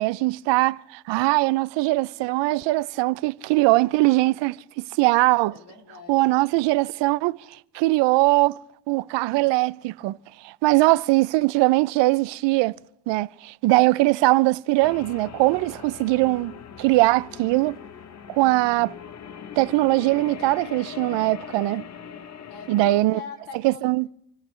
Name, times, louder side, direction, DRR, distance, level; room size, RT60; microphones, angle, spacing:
voice 1, 0.0-5.5 6.1-7.4 7.7-8.6 8.9-10.2 10.4-12.7 13.1-17.8 18.3-18.9 19.6-21.8 22.7-23.2 23.6-24.1, right 20 dB, 90° right, 0.6 m, -21 dB
voice 2, 5.5-6.2 22.5-23.9, left 5 dB, 70° left, 2.9 m, -42 dB
sound 1, 14.8-23.0, left 8 dB, 40° left, 0.8 m, -40 dB
28.0 x 14.5 x 3.2 m
cardioid pair, 135°, 42 cm